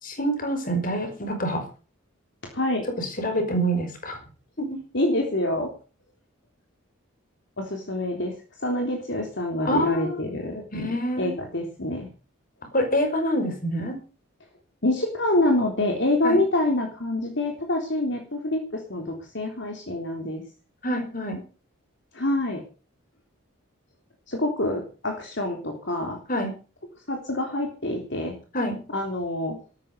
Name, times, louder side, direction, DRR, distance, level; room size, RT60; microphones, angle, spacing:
voice 1, 0.0-1.6 3.0-4.2 4.6-4.7 9.6-10.2 10.7-11.3 12.7-14.0 16.2-16.4 20.8-21.4 26.3-26.5 28.5-28.8, equal, 40° left, 6 dB, 5.5 m, -26 dB
voice 2, 2.5-2.9 4.9-5.7 7.6-8.3 8.6-10.6 11.2-12.1 14.8-20.4 22.1-22.6 24.3-26.2 27.1-28.3 28.9-29.6, left 1 dB, 55° left, 2 dB, 3.6 m, -26 dB
14.0 x 13.5 x 6.9 m, 0.37 s
head